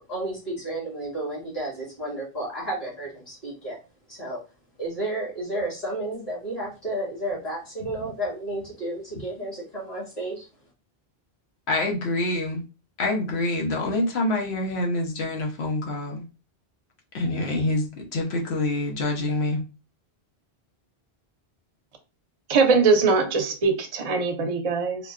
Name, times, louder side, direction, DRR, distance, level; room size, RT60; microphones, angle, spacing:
voice 1, 0.1-3.8 4.1-4.4 4.8-10.5, right 1 dB, 40° left, 1.9 m, -32 dB
voice 2, 11.7-12.6 13.0-16.2 17.1-19.6, left 2 dB, 80° left, 1.1 m, -26 dB
voice 3, 22.5-25.1, right 4 dB, 45° right, 0.5 m, -21 dB
3.8 x 2.2 x 2.4 m
omnidirectional pair, 1.1 m